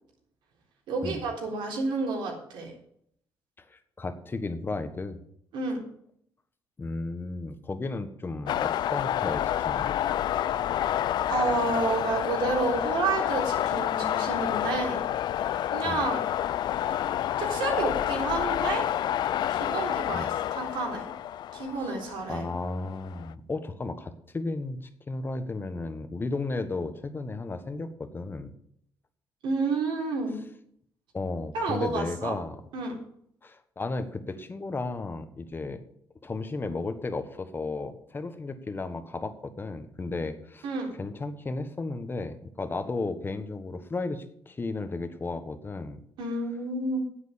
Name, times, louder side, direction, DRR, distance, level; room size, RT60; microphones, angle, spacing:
voice 1, 0.9-2.7 5.5-5.8 11.3-15.0 15.7-16.3 17.4-18.8 19.5-21.1 21.5-22.5 29.4-30.4 31.5-32.4 32.7-33.0 40.6-40.9 46.2-47.0, right 3 dB, 80° right, 0 dB, 3.7 m, -30 dB
voice 2, 3.7-5.2 6.8-9.9 15.8-16.0 20.1-20.3 22.3-28.5 31.1-32.6 33.4-35.8 36.2-40.6 40.9-46.0, left 3 dB, 25° left, 10 dB, 1.4 m, -34 dB
sound 1, 8.5-23.3, left 11 dB, 65° left, 0.4 m, -29 dB
9.6 x 8.2 x 6.8 m, 0.68 s
cardioid pair, 95°, 8 cm